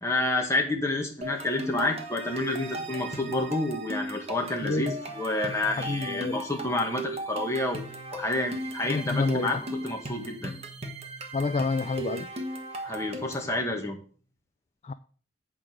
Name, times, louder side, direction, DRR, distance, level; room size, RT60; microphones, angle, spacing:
voice 1, 0.0-10.5 12.8-14.0, left 2 dB, 15° left, 1.7 m, -29 dB
sound 1, 1.2-13.5, right 1 dB, 35° right, 1.3 m, -37 dB
voice 2, 5.8-6.4 8.9-9.5 11.3-12.3 14.8-14.9, left 3 dB, 35° left, 0.3 m, -28 dB
8.5 x 5.0 x 6.2 m
head